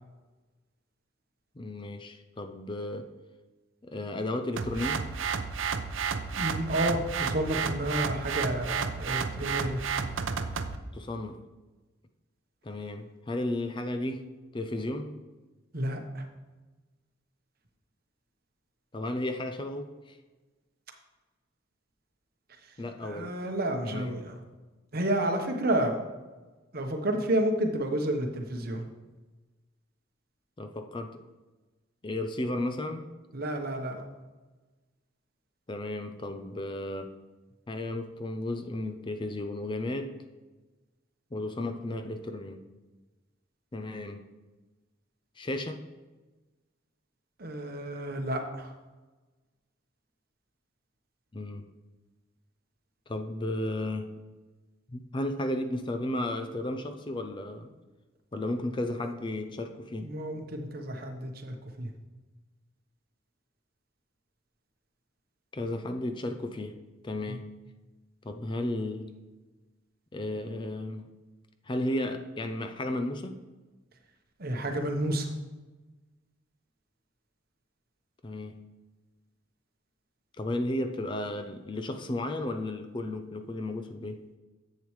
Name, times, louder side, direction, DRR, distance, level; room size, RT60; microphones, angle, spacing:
voice 1, 1.6-3.1 3.8-5.0 10.9-11.4 12.6-15.1 18.9-20.2 22.8-23.3 23.8-24.2 30.6-31.2 32.0-33.1 35.7-37.1 37.7-40.1 41.3-42.6 43.7-44.2 45.4-45.8 51.3-51.7 53.1-54.1 54.9-57.7 58.3-60.1 65.5-66.8 67.0-67.5 68.2-69.1 70.1-71.1 71.7-73.4 78.2-78.6 80.4-84.2, left 1 dB, 25° left, 7 dB, 0.5 m, -34 dB
sound 1, 4.6-10.8, right 6 dB, 80° right, 0.6 m, -32 dB
voice 2, 6.3-9.8 15.7-16.2 23.0-24.3 24.9-26.0 26.7-28.9 33.3-34.0 47.4-48.7 60.0-61.9 67.3-67.4 74.4-75.3, right 1 dB, 50° right, 4 dB, 1.0 m, -30 dB
10.5 x 7.6 x 3.2 m, 1.2 s
head